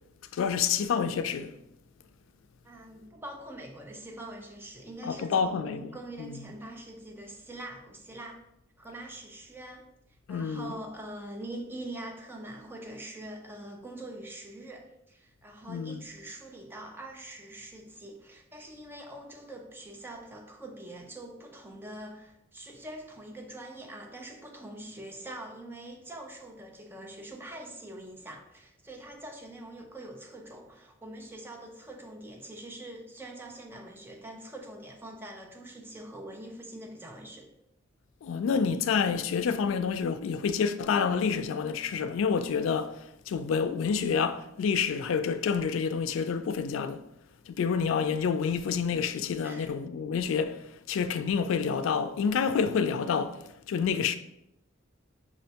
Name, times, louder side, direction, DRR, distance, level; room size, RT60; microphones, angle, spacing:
voice 1, 0.3-1.5 5.0-5.9 6.2-6.4 10.3-10.7 15.7-16.0 38.2-47.0 47.5-54.2, left 6 dB, 90° left, 0.3 m, -28 dB
voice 2, 2.6-8.4 8.8-9.9 10.3-37.5 49.4-49.8, right 1 dB, 10° right, 0.4 m, -44 dB
6.0 x 2.1 x 2.8 m
head